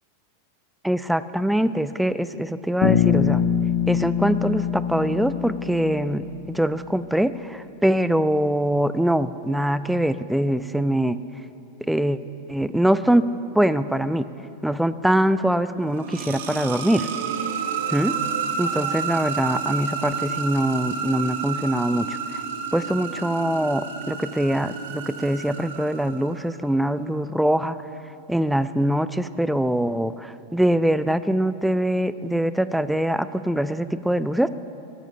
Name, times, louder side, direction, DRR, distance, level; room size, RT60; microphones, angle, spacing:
voice 1, 0.8-3.4 3.9-11.2 11.8-12.2 12.5-13.3 13.5-14.3 14.6-17.1 17.9-18.1 18.6-22.2 22.7-27.8 28.3-34.5, right 1 dB, ahead, 14 dB, 0.4 m, -23 dB
Bass guitar, 2.8-6.9, left 9 dB, 70° left, 0.8 m, -24 dB
sound 1, 15.8-26.5, right 6 dB, 75° right, 1.1 m, -30 dB
15.0 x 7.5 x 5.5 m, 3.0 s
hypercardioid pair, 110°, 0 cm